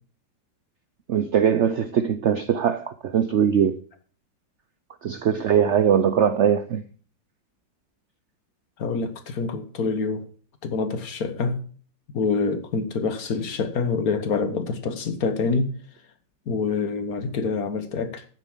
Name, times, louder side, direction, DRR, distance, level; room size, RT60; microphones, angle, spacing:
voice 1, 1.1-3.8 5.0-6.8, right 8 dB, 75° right, 0.6 m, -21 dB
voice 2, 8.8-10.2 10.6-11.6 12.1-15.7 16.5-18.3, left 4 dB, 55° left, 1.7 m, -26 dB
9.7 x 7.3 x 7.3 m
omnidirectional pair, 2.0 m